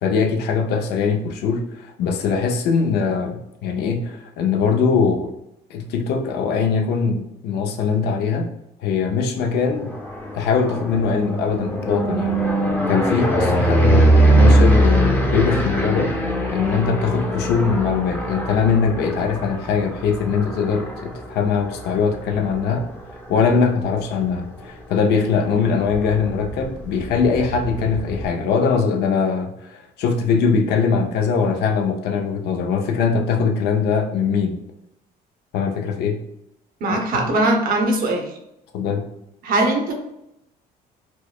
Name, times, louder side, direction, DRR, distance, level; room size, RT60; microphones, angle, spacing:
voice 1, 0.0-5.3 5.7-8.5 8.8-9.9 10.3-12.4 12.9-16.1 16.5-22.9 23.3-34.6 35.5-36.2 37.3-37.4 38.7-39.0, left 5 dB, 75° left, 4 dB, 0.5 m, -21 dB
sound 1, 9.6-23.6 24.1-24.6 24.8-24.9 25.2-28.3, right 1 dB, 10° left, 0.6 m, -21 dB
voice 2, 36.8-38.3 39.4-39.9, right 2 dB, 60° right, 3 dB, 0.8 m, -20 dB
4.5 x 2.1 x 2.3 m, 0.82 s
cardioid pair, 110°, 17 cm